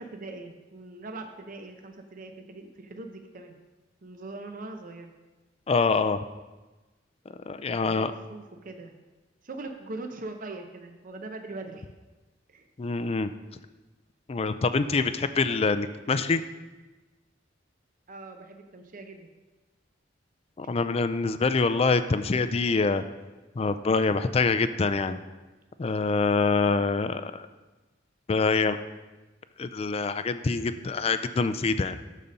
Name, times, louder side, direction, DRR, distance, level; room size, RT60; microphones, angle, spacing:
voice 1, 0.0-3.6 4.0-5.1 7.7-8.9 9.4-11.9 12.5-12.7 18.1-19.3 26.6-26.9, right 2 dB, 45° right, 5 dB, 0.7 m, -41 dB
voice 2, 5.7-6.2 7.5-8.1 12.8-13.3 14.3-16.4 20.6-23.0 23.6-25.2 25.8-27.5 28.3-28.8 29.6-32.0, left 4 dB, 30° left, 11 dB, 0.4 m, -25 dB
12.5 x 4.2 x 5.2 m, 1.2 s
head